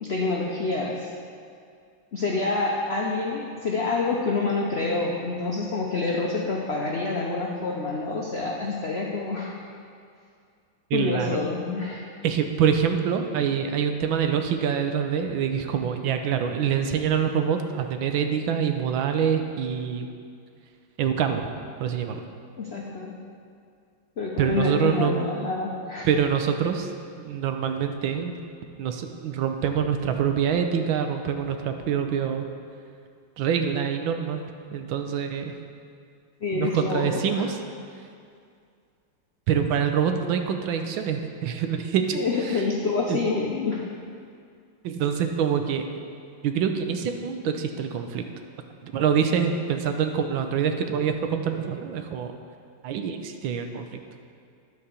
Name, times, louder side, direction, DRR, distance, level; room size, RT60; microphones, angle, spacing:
voice 1, 0.0-1.1 2.1-9.5 10.9-12.0 22.6-23.2 24.2-26.1 36.4-37.5 42.1-43.9, left 3 dB, 75° left, -2 dB, 0.5 m, -27 dB
voice 2, 10.9-11.3 12.2-20.1 21.0-21.5 21.8-22.2 24.4-25.2 26.0-26.9 27.2-28.4 28.8-32.5 33.4-34.4 34.7-35.5 36.5-37.6 39.5-42.6 43.1-43.2 44.8-45.8 46.4-48.2 48.8-52.3 52.8-54.0, right 7 dB, 80° right, 6 dB, 1.4 m, -25 dB
10.5 x 4.7 x 6.7 m, 2.3 s
omnidirectional pair, 2.2 m